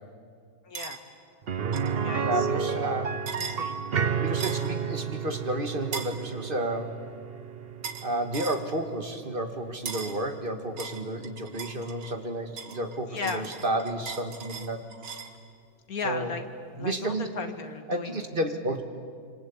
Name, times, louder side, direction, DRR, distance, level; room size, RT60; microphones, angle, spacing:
voice 1, 0.6-1.0 2.0-2.6 3.4-3.9 13.1-13.4 15.9-16.4 16.8-18.2, left 5 dB, 55° left, 6 dB, 2.3 m, -36 dB
sound 1, 0.7-1.0 1.7-2.0 3.3-3.6 4.4-4.7 5.9-6.2 7.8-8.1 8.3-8.6 9.9-10.2 10.8-12.2 12.6-15.4, right 6 dB, 70° right, 2.2 m, -38 dB
sound 2, 1.5-11.2 11.6-11.7 14.1-14.2, right 7 dB, 50° right, 0.8 m, -32 dB
voice 2, 2.2-3.2 4.2-7.0 8.0-14.9 16.0-16.3 16.8-17.3 17.9-18.8, right 1 dB, 30° right, 6 dB, 1.9 m, -31 dB
27.0 x 26.0 x 8.6 m, 2.2 s
omnidirectional pair, 2.0 m